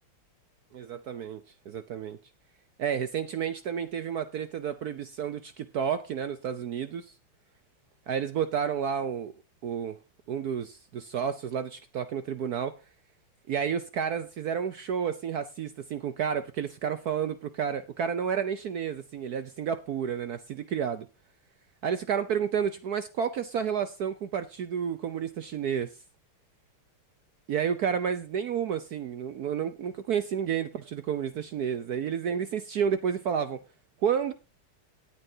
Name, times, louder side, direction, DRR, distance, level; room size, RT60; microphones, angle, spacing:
voice 1, 0.7-1.4 1.7-2.2 2.8-7.1 8.1-9.3 9.6-10.0 10.3-12.8 13.5-21.1 21.8-25.9 27.5-33.6 34.0-34.3, right 7 dB, 70° right, 0.9 m, -30 dB
18.0 x 8.9 x 2.8 m
omnidirectional pair, 2.4 m